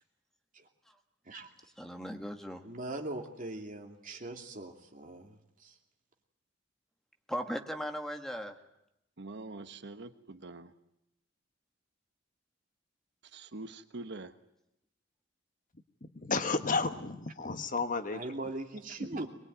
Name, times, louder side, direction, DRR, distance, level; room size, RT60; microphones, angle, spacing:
voice 1, 1.8-2.6 7.3-8.5, equal, ahead, 5 dB, 1.6 m, -37 dB
voice 2, 2.6-5.8 18.1-19.3, right 2 dB, 45° right, 3 dB, 2.8 m, -40 dB
voice 3, 9.2-10.7 13.3-14.3, right 2 dB, 65° right, 9 dB, 1.1 m, -44 dB
voice 4, 16.0-18.2, left 4 dB, 45° left, 9 dB, 1.3 m, -32 dB
23.0 x 21.0 x 9.4 m, 0.82 s
head